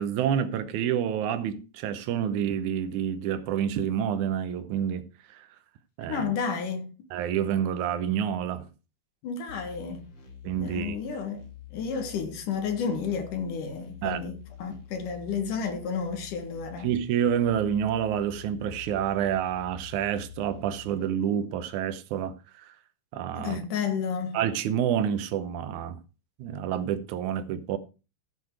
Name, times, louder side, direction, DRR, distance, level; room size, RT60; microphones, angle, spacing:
voice 1, 0.0-5.5 6.0-6.3 7.1-8.7 10.4-11.0 14.0-14.2 16.8-22.7 23.1-23.6 24.3-26.0 26.4-27.8, right 9 dB, 75° right, 2.3 m, -28 dB
voice 2, 6.1-6.9 9.2-10.1 10.6-16.9 23.3-24.4, left 6 dB, 85° left, 3.2 m, -32 dB
sound 1, 9.5-21.1, left 9 dB, 40° left, 2.1 m, -47 dB
14.5 x 6.3 x 4.7 m
omnidirectional pair, 3.6 m